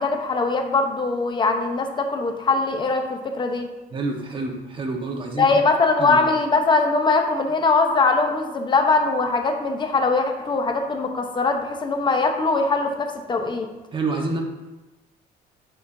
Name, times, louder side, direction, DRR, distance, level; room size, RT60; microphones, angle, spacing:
voice 1, 0.0-3.7 5.4-13.7, left 3 dB, 30° left, 5 dB, 0.8 m, -21 dB
voice 2, 3.9-5.6 6.0-6.2 13.9-14.4, right 3 dB, 30° right, 1 dB, 1.1 m, -28 dB
9.3 x 4.2 x 2.6 m, 1.1 s
cardioid pair, 110°, 17 cm